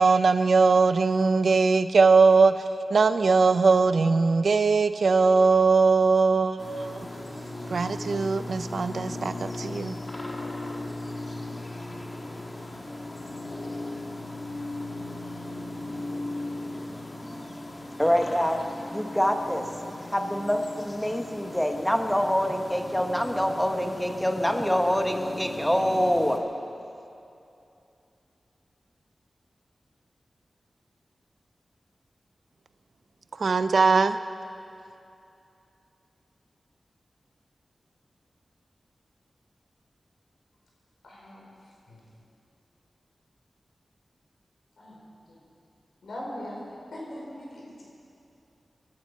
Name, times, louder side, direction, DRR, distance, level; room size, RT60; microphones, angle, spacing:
voice 1, 0.0-2.5 2.9-7.1 7.7-10.0 33.4-34.2, right 4 dB, 80° right, 0.6 m, -20 dB
sound 1, 6.6-26.4, left 2 dB, 35° left, 1.8 m, -37 dB
voice 2, 18.0-18.6 18.9-19.7 20.0-26.4, equal, 5° left, 1.1 m, -25 dB
voice 3, 41.0-41.5 41.9-42.0 44.8-45.0 45.3-45.4 46.0-46.5 46.9-47.8, left 1 dB, 90° left, 4.4 m, -40 dB
22.0 x 10.5 x 5.4 m
wide cardioid pair, 70°, 0 cm